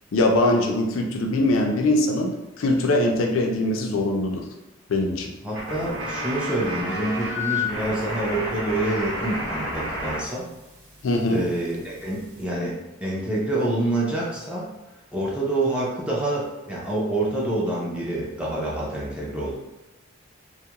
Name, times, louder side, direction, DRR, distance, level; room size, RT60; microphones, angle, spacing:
voice 1, 0.1-4.4 4.9-5.3 11.0-11.4, left 1 dB, 70° left, 2 dB, 0.4 m, -22 dB
voice 2, 5.4-10.5 11.3-14.7 15.1-19.6, right 1 dB, 5° right, -6 dB, 0.5 m, -27 dB
sound 1, 5.5-10.2 10.4-12.4, left 1 dB, 75° right, 0.9 m, -31 dB
2.3 x 2.1 x 2.8 m, 0.99 s
head